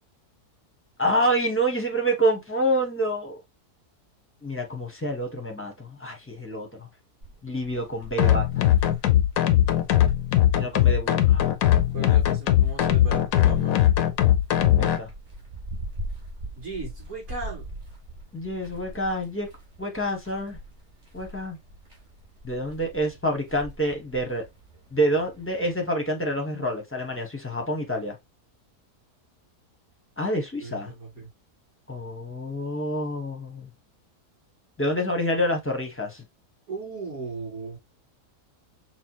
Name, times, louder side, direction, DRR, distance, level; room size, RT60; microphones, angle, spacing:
voice 1, 1.0-3.4 4.4-6.9 7.4-8.7 10.6-11.5 14.8-15.1 18.3-19.5 19.8-20.6 21.1-21.6 22.4-24.4 24.9-28.2 30.2-30.9 31.9-33.7 34.8-36.2, equal, 10° left, 0.7 m, -27 dB
sound 1, 7.2-25.8, right 1 dB, 40° right, 2.4 m, -42 dB
Acid Beat, 8.2-15.0, left 12 dB, 70° left, 1.0 m, -20 dB
voice 2, 11.9-13.8 16.6-17.6 30.6-31.3 36.7-37.8, right 3 dB, 60° right, 3.7 m, -36 dB
6.0 x 2.3 x 2.9 m
omnidirectional pair, 1.7 m